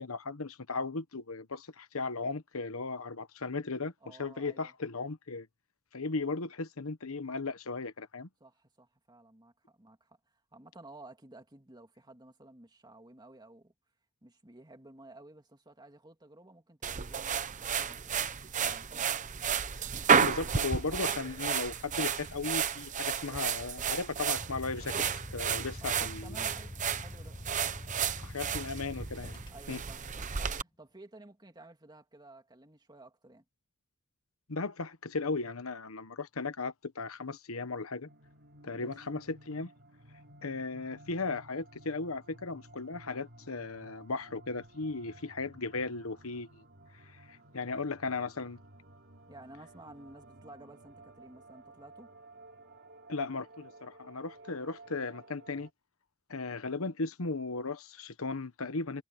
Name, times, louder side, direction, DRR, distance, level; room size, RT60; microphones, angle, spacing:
voice 1, 0.0-5.5 5.9-8.3 20.2-25.0 25.3-26.4 28.2-29.4 29.7-29.8 34.5-38.1 38.6-39.7 40.4-46.6 47.1-48.6 53.1-55.7 56.3-59.0, left 3 dB, 75° left, 1.2 m, -36 dB
voice 2, 4.0-4.7 8.4-10.2 10.5-13.7 14.2-19.2 25.8-27.4 29.5-33.4 38.7-38.9 49.3-52.1, right 2 dB, 20° right, 2.5 m, -54 dB
sound 1, 16.8-30.6, right 7 dB, 35° right, 0.8 m, -32 dB
sound 2, 24.4-29.9, left 1 dB, 20° left, 1.7 m, -45 dB
sound 3, 38.1-55.7, right 2 dB, 55° right, 3.1 m, -55 dB
head